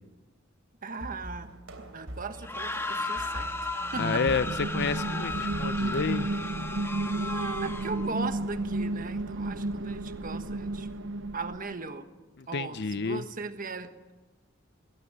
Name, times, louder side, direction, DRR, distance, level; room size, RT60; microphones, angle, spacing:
voice 1, 0.8-4.2 7.2-10.9 11.3-12.1 12.5-14.1, right 4 dB, 45° right, 9 dB, 1.4 m, -38 dB
sound 1, 1.0-6.2, right 1 dB, 80° right, 3.3 m, -44 dB
sound 2, 2.4-8.1, left 2 dB, 15° left, 1.5 m, -35 dB
voice 2, 4.0-6.3 12.4-13.2, left 5 dB, 55° left, 13 dB, 0.6 m, -30 dB
sound 3, 4.0-11.8, right 2 dB, 65° right, 0.8 m, -33 dB
22.0 x 18.0 x 8.7 m, 1.2 s
head